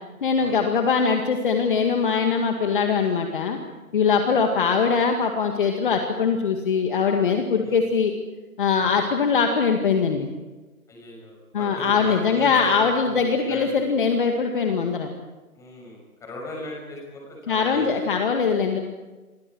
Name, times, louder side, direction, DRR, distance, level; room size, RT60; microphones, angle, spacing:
voice 1, 0.2-3.6 3.9-8.1 8.6-10.3 11.5-15.1 17.5-18.8, left 5 dB, 35° left, 4 dB, 2.1 m, -22 dB
voice 2, 10.9-13.9 15.6-18.2, left 1 dB, 5° left, -1 dB, 6.2 m, -37 dB
30.0 x 24.5 x 4.7 m, 1.2 s
figure-of-eight pair, 155°, 44 cm